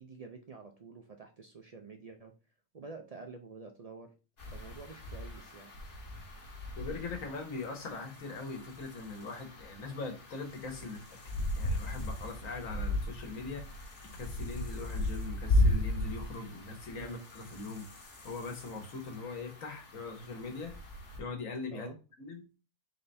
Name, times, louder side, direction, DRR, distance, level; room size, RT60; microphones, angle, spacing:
voice 1, 0.0-2.3 2.7-4.1 4.5-5.7 10.8-10.9 17.0-17.2 21.7-22.0, right 4 dB, 70° right, 4 dB, 0.3 m, -48 dB
sound 1, 4.4-21.2, left 1 dB, 60° left, 1.5 m, -36 dB
voice 2, 6.8-11.0 11.5-17.9 18.2-20.7 21.2-21.9 22.2-22.4, left 3 dB, 80° left, 4 dB, 1.6 m, -41 dB
3.9 x 3.3 x 4.1 m, 0.31 s
omnidirectional pair, 1.4 m